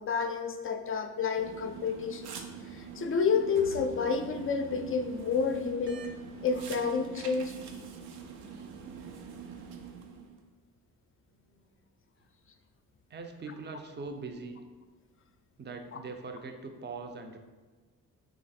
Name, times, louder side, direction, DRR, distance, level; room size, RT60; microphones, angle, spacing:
voice 1, 0.0-2.4 2.7-6.0 6.4-7.5 15.9-16.0, left 5 dB, 35° left, 7 dB, 0.4 m, -30 dB
sound 1, 1.4-10.4, right 6 dB, 80° right, 0.5 m, -44 dB
voice 2, 11.3-11.7 13.1-14.6 15.6-17.4, right 3 dB, 25° right, 5 dB, 0.5 m, -42 dB
3.1 x 2.4 x 4.1 m, 1.3 s
supercardioid pair, 50°, 39 cm